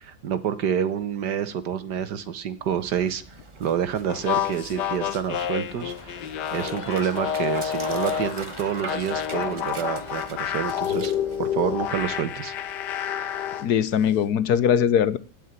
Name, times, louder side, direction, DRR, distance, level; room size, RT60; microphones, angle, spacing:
voice 1, 0.0-3.2 3.6-6.2 6.5-11.1 11.4-12.5, right 8 dB, 80° right, 1.8 m, -28 dB
Dog, 2.6-12.5, right 3 dB, 20° right, 1.0 m, -42 dB
sound 1, 4.1-8.4 8.9-13.7, left 9 dB, 90° left, 1.5 m, -29 dB
sound 2, 5.3-11.2 11.6-11.9, left 5 dB, 35° left, 0.7 m, -44 dB
voice 2, 13.6-15.2, left 8 dB, 70° left, 1.3 m, -21 dB
16.5 x 5.6 x 9.6 m
omnidirectional pair, 1.8 m